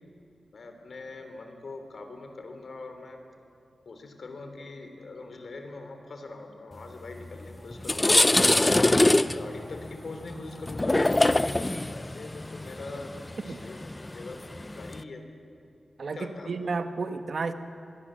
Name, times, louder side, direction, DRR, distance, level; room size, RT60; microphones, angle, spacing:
voice 1, 0.5-3.2 3.8-8.6 9.3-13.2 13.4-13.8 14.1-15.2 16.1-16.5, left 3 dB, 60° left, 6 dB, 3.0 m, -42 dB
sound 1, 7.2-7.3 7.7-15.0, left 2 dB, 20° left, 0.5 m, -24 dB
voice 2, 16.0-17.5, right 4 dB, 60° right, 9 dB, 1.2 m, -32 dB
25.0 x 21.5 x 7.5 m, 2.6 s
wide cardioid pair, 125°, 0 cm